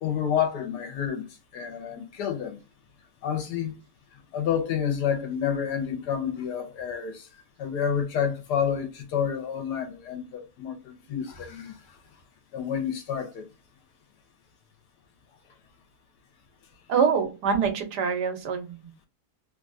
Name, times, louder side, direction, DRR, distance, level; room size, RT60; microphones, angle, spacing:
voice 1, 0.0-1.2 1.5-2.6 3.2-3.7 4.3-7.3 7.6-11.8 12.5-13.4, left 8 dB, 85° left, 1.4 m, -29 dB
voice 2, 16.9-19.1, right 6 dB, 85° right, 1.3 m, -25 dB
3.3 x 2.3 x 2.5 m
omnidirectional pair, 1.7 m